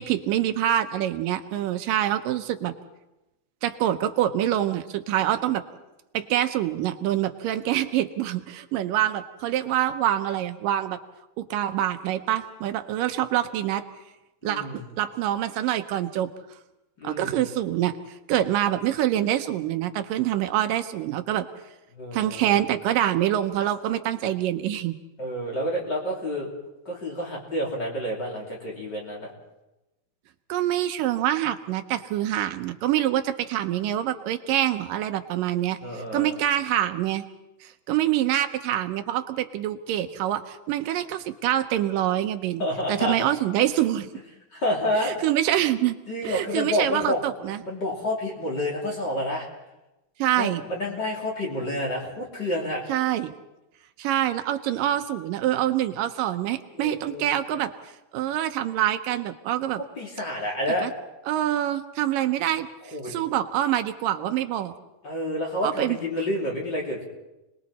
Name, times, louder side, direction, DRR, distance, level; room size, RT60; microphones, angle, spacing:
voice 1, 0.0-2.7 3.6-5.6 6.1-11.0 11.4-13.8 14.4-16.3 17.0-18.0 18.3-21.5 22.1-25.0 30.5-37.2 37.6-44.1 45.0-46.0 46.2-47.6 50.2-50.6 52.9-53.3 54.0-57.7 58.1-59.8 60.8-60.9 61.3-64.7 65.6-66.0, right 12 dB, 80° right, 8 dB, 2.5 m, -25 dB
voice 2, 14.4-14.9 17.0-17.4 21.9-22.6 25.2-26.5 26.9-29.3 35.8-36.3 42.6-43.2 44.5-45.2 46.1-49.5 50.4-52.8 56.7-57.4 60.0-61.0 62.9-63.1 65.0-67.0, left 1 dB, 30° left, -2 dB, 3.5 m, -29 dB
30.0 x 20.5 x 4.2 m, 0.98 s
omnidirectional pair, 3.9 m